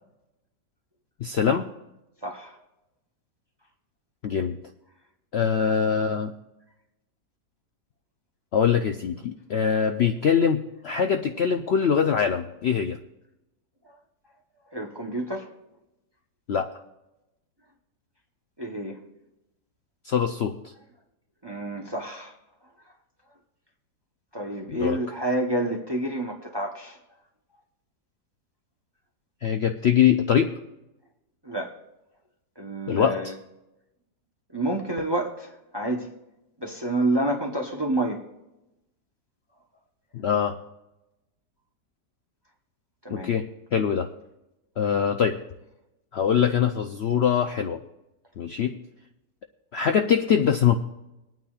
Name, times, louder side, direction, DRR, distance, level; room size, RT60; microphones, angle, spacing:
voice 1, 1.2-1.7 4.2-4.6 5.3-6.3 8.5-13.0 16.5-16.7 20.0-20.6 24.7-25.0 29.4-30.5 32.9-33.2 40.1-40.6 43.1-44.1 44.8-45.4 46.1-47.8 48.4-48.8 49.7-50.8, left 7 dB, 90° left, 6 dB, 0.5 m, -23 dB
voice 2, 2.2-2.6 13.8-14.0 14.7-15.5 18.6-19.0 21.4-22.3 24.3-27.0 31.4-31.7 32.6-33.3 34.5-36.1 36.6-38.2 43.0-43.3, right 1 dB, 25° right, 1 dB, 0.6 m, -29 dB
22.0 x 9.3 x 2.4 m, 0.94 s
omnidirectional pair, 1.8 m